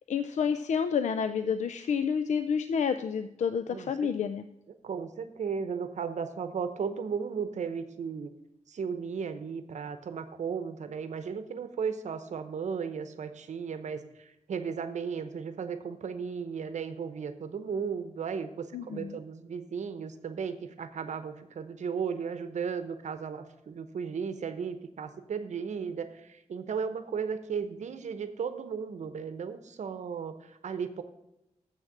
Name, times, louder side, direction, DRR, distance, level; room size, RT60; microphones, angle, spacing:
voice 1, 0.1-4.4 18.7-19.2, left 6 dB, 75° left, 11 dB, 0.4 m, -29 dB
voice 2, 3.7-4.1 4.8-8.3 8.7-31.0, right 6 dB, 75° right, 10 dB, 0.8 m, -35 dB
7.4 x 6.4 x 7.3 m, 0.87 s
wide cardioid pair, 130°, 12 cm